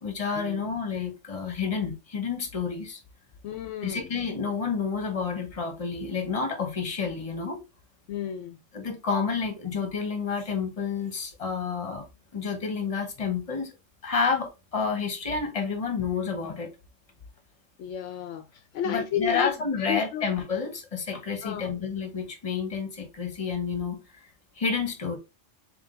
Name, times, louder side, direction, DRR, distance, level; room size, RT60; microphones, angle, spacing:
voice 1, 0.0-3.0 3.8-7.6 8.7-12.0 12.3-13.7 14.0-16.7 18.8-24.0 24.6-25.2, left 5 dB, 30° left, 1.1 m, -29 dB
voice 2, 3.4-4.1 8.1-8.6 17.8-18.5 18.7-19.5 19.8-20.3 21.4-21.7, left 9 dB, 75° left, 0.9 m, -32 dB
3.6 x 3.4 x 3.7 m
omnidirectional pair, 1.3 m